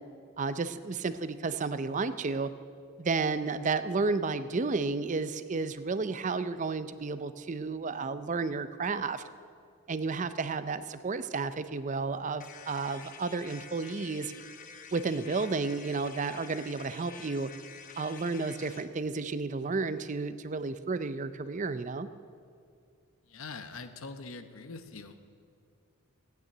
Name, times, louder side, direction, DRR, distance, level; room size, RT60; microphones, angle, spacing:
voice 1, 0.4-2.5 3.0-9.2 9.9-14.3 14.9-17.5 18.0-22.1, right 4 dB, 35° right, 13 dB, 0.5 m, -32 dB
sound 1, 12.4-18.9, left 6 dB, 35° left, 0.9 m, -49 dB
voice 2, 23.2-25.4, left 4 dB, 70° left, 9 dB, 0.9 m, -44 dB
15.0 x 9.4 x 8.8 m, 2.3 s
head